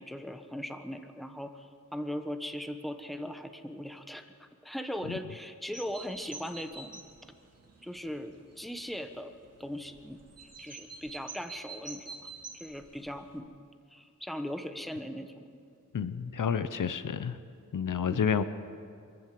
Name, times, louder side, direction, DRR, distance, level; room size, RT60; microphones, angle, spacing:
voice 1, 0.0-7.0 7.8-9.3 9.6-13.5 13.9-15.6 18.1-18.2, equal, ahead, 7 dB, 1.2 m, -39 dB
sound 1, 5.7-13.4, right 4 dB, 50° right, 2.3 m, -48 dB
voice 2, 15.9-17.4 17.7-18.4, left 7 dB, 80° left, 12 dB, 0.8 m, -30 dB
24.0 x 14.5 x 7.7 m, 2.3 s
wide cardioid pair, 100°, 31 cm